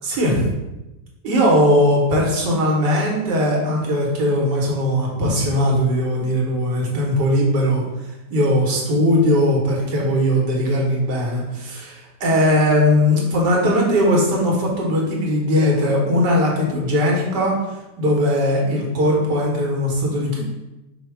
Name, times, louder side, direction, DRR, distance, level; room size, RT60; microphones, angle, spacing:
voice 1, 0.0-0.5 1.2-20.4, equal, 90° right, -2 dB, 1.7 m, -19 dB
5.1 x 2.1 x 4.5 m, 0.99 s
omnidirectional pair, 1.8 m